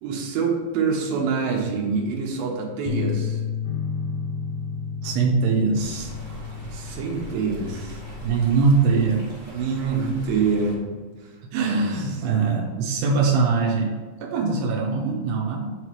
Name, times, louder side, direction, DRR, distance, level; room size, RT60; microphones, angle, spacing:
voice 1, 0.0-3.4 6.7-8.0 9.5-10.8 11.2-11.3 11.6-12.0 12.3-12.4, right 5 dB, 70° right, -1 dB, 2.7 m, -26 dB
sound 1, 2.9-9.1, left 9 dB, 80° left, 2.4 m, -32 dB
sound 2, 3.6-10.8, right 1 dB, 65° left, 3.1 m, -40 dB
voice 2, 5.0-6.1 8.2-9.3 10.0-10.2 11.5-13.9 14.2-15.7, right 4 dB, 85° right, -1 dB, 2.8 m, -22 dB
Stream, 5.7-10.8, right 2 dB, 30° right, 1.3 m, -41 dB
7.4 x 3.2 x 5.9 m, 1.4 s
omnidirectional pair, 4.8 m